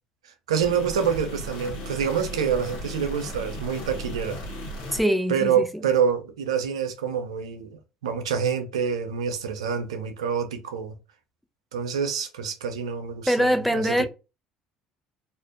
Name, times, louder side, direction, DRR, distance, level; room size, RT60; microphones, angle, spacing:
voice 1, 0.2-4.4 5.3-11.0 11.7-14.1, right 7 dB, 85° right, 0.4 m, -27 dB
sound 1, 0.6-5.0, equal, 70° left, 0.8 m, -36 dB
voice 2, 4.9-5.6 13.3-14.1, equal, ahead, 0.4 m, -23 dB
2.5 x 2.1 x 2.4 m
hypercardioid pair, 70°, 3 cm